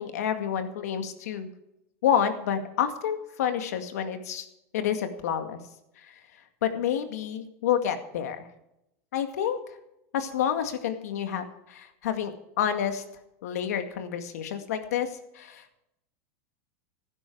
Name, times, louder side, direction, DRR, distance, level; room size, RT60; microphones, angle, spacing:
voice 1, 0.0-1.5 2.0-4.5 4.7-5.6 6.0-6.1 6.6-8.5 9.1-9.6 10.1-13.0 13.4-15.8, left 9 dB, 85° left, 8 dB, 2.1 m, -29 dB
15.5 x 12.0 x 4.7 m, 0.84 s
supercardioid pair, 145°, 8 cm